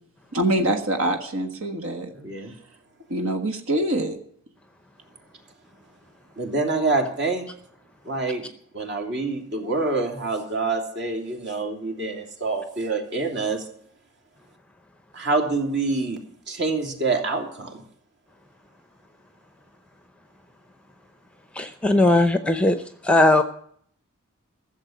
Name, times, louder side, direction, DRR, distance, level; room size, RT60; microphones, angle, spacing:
voice 1, 0.3-2.1 3.1-4.2, right 1 dB, 65° right, 5 dB, 1.6 m, -24 dB
voice 2, 2.1-2.5 6.4-7.5 8.0-8.5 8.7-13.6 15.1-16.2 16.5-17.8, right 3 dB, 50° right, 3 dB, 3.0 m, -26 dB
voice 3, 21.6-22.8 23.0-23.4, left 2 dB, 5° left, 10 dB, 0.7 m, -18 dB
15.0 x 7.4 x 9.3 m, 0.63 s
head